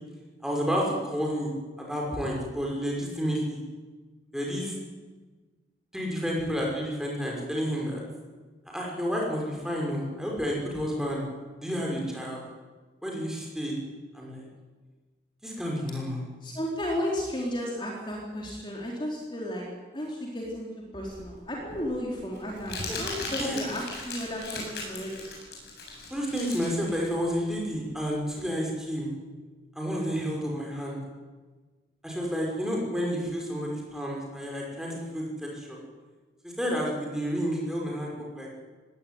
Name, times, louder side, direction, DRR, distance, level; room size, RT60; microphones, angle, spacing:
voice 1, 0.4-1.5 1.8-3.6 4.3-4.7 5.9-8.0 8.7-11.2 11.6-12.4 13.0-13.8 14.1-14.5 15.4-16.2 22.9-23.6 26.1-29.1 29.8-31.0 32.0-35.8 36.4-38.5, equal, 5° right, -2 dB, 5.9 m, -30 dB
voice 2, 16.4-19.6 19.9-20.7 20.9-25.3, equal, 25° left, -2 dB, 3.8 m, -33 dB
Crumpling crinkling, 21.1-28.2, left 3 dB, 65° left, 8.0 m, -38 dB
20.5 x 17.5 x 9.5 m, 1.3 s
head